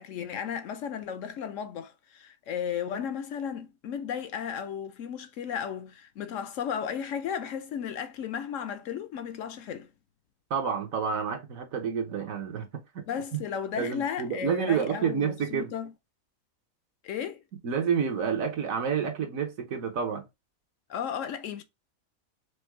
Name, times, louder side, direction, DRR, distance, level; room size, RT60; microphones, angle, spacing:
voice 1, 0.0-9.9 13.1-15.9 17.0-17.4 20.9-21.6, left 8 dB, 70° left, 0.9 m, -34 dB
voice 2, 10.5-13.0 13.3-13.4 13.8-15.7 17.6-20.3, right 7 dB, 70° right, 1.4 m, -29 dB
5.1 x 2.2 x 4.5 m
omnidirectional pair, 1.5 m